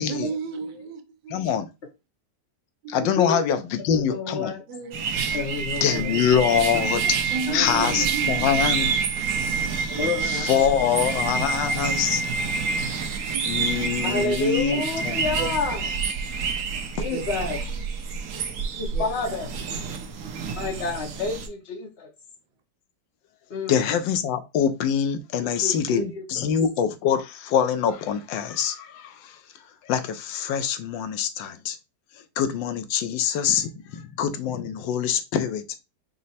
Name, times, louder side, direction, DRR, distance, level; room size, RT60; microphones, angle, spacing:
voice 1, 0.1-1.5 2.8-3.1 4.7-5.4 6.3-6.9 7.3-8.6 9.9-10.0 10.3-10.4 13.3-14.8 15.3-15.9 17.1-17.6 18.9-19.4, right 5 dB, 85° right, 1.4 m, -35 dB
voice 2, 1.3-1.7 2.9-4.5 5.8-7.2 7.5-8.9 10.2-12.2 13.4-15.4 23.7-29.4 29.8-31.8 32.4-35.6, left 8 dB, 85° left, 1.4 m, -24 dB
voice 3, 4.1-4.6 5.3-6.2 6.7-6.8 7.5-8.0 9.9-10.9 14.0-15.8 17.0-17.6 18.8-19.5 20.6-22.1 23.5-23.8 25.4-26.5, left 4 dB, 55° left, 0.7 m, -29 dB
sound 1, 4.9-21.5, right 5 dB, 65° right, 0.8 m, -28 dB
5.3 x 2.1 x 4.1 m
omnidirectional pair, 2.0 m